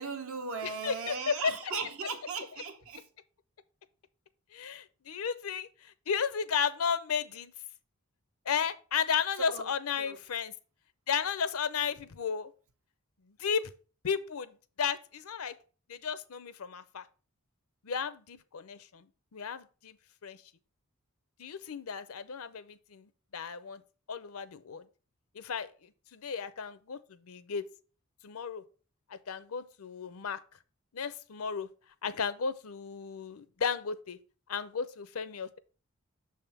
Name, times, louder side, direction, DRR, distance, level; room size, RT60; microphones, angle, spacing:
voice 1, 0.0-3.0 9.4-9.7 10.0-10.2, right 5 dB, 70° right, 1.1 m, -37 dB
voice 2, 0.6-1.7 4.5-7.5 8.5-10.5 11.1-12.5 13.4-13.7 14.0-15.6 15.9-17.0 17.8-19.0 19.3-20.0 20.2-20.4 21.4-23.8 24.1-24.8 25.3-27.6 28.2-28.6 29.1-30.4 30.9-31.7 32.0-34.2 34.5-35.6, left 6 dB, 80° left, 0.6 m, -34 dB
6.6 x 3.6 x 5.6 m
head